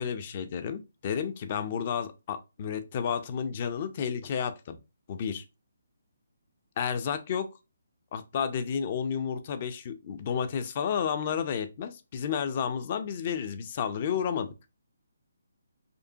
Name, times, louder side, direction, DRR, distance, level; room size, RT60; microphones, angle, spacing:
voice 1, 0.0-4.8 5.1-5.4 6.8-7.5 8.1-14.5, left 7 dB, 35° left, 0.4 m, -31 dB
5.2 x 2.1 x 2.7 m
figure-of-eight pair, 140°, 0 cm